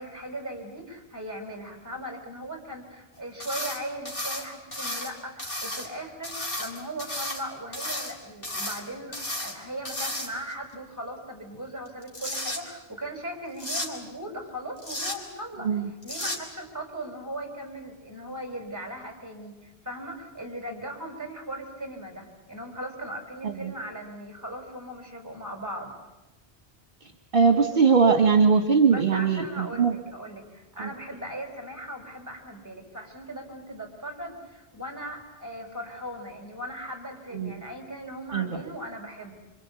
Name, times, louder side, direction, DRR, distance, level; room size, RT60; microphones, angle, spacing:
voice 1, 0.0-25.9 28.9-39.3, right 1 dB, 15° right, 3 dB, 5.2 m, -38 dB
sound 1, 3.4-3.8 4.1-5.1 5.4-5.9 6.2-7.4 7.7-8.1 8.4-8.8 9.1-9.5 9.9-10.5 11.9-12.6 13.6-13.9 14.8-15.2 16.0-16.4, left 1 dB, 60° left, 3.8 m, -33 dB
voice 2, 27.3-30.0 30.8-30.9 37.3-37.6 38.3-38.5, right 5 dB, 60° right, 5 dB, 1.8 m, -21 dB
27.0 x 26.0 x 8.4 m, 1.0 s
omnidirectional pair, 1.0 m